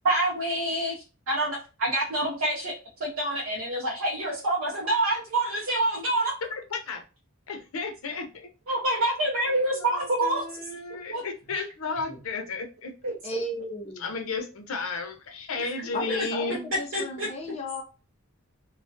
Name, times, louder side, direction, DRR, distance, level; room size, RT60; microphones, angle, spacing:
voice 1, 0.0-2.7 3.0-6.3 8.7-10.4 10.9-11.2 11.5-11.6 13.0-13.4 16.1-16.3 16.9-17.3, right 1 dB, 80° right, -4 dB, 0.6 m, -27 dB
voice 2, 6.5-7.0 7.5-8.5 9.5-12.9 14.0-16.7, left 4 dB, 75° left, 4 dB, 0.6 m, -33 dB
voice 3, 13.2-14.0 15.9-17.8, left 1 dB, 30° left, 1 dB, 0.4 m, -34 dB
2.3 x 2.1 x 2.5 m, 0.32 s
head